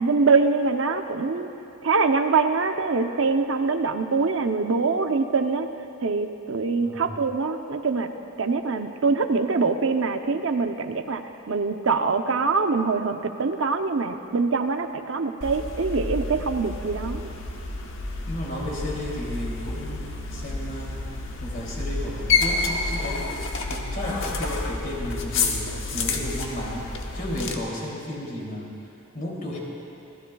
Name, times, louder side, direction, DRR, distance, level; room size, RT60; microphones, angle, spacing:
voice 1, 0.0-1.5 1.8-5.7 6.0-8.1 8.4-11.2 11.5-17.3, right 4 dB, 75° right, 6 dB, 0.7 m, -24 dB
voice 2, 6.8-7.2 18.2-21.0 21.4-23.3 23.7-26.9 27.1-28.7 29.1-29.6, left 1 dB, 45° left, -3 dB, 2.9 m, -33 dB
sound 1, 15.4-27.6, left 3 dB, 70° left, 1.2 m, -29 dB
27.5 x 15.5 x 2.3 m, 2.7 s
head